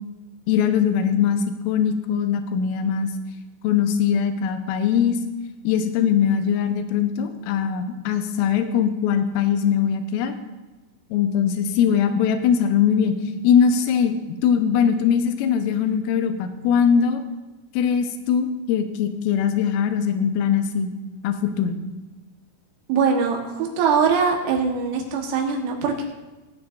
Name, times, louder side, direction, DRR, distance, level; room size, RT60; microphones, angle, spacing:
voice 1, 0.5-3.1 3.6-5.2 5.6-10.3 11.1-13.1 13.4-17.2 17.7-20.9 21.2-21.8, left 7 dB, 80° left, 7 dB, 3.3 m, -21 dB
voice 2, 22.9-26.0, right 5 dB, 75° right, 1 dB, 3.5 m, -22 dB
19.5 x 9.9 x 2.5 m, 1.1 s
omnidirectional pair, 6.0 m